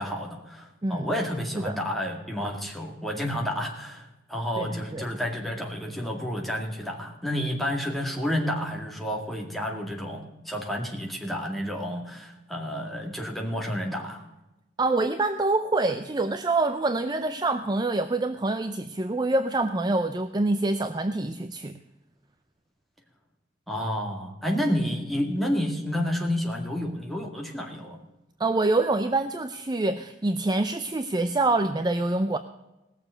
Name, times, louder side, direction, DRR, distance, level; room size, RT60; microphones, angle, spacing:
voice 1, 0.0-14.2 23.7-28.0, equal, ahead, 0 dB, 2.1 m, -30 dB
voice 2, 4.6-5.1 14.8-21.8 28.4-32.4, right 2 dB, 20° right, 9 dB, 0.5 m, -26 dB
18.5 x 7.0 x 6.6 m, 1.0 s
head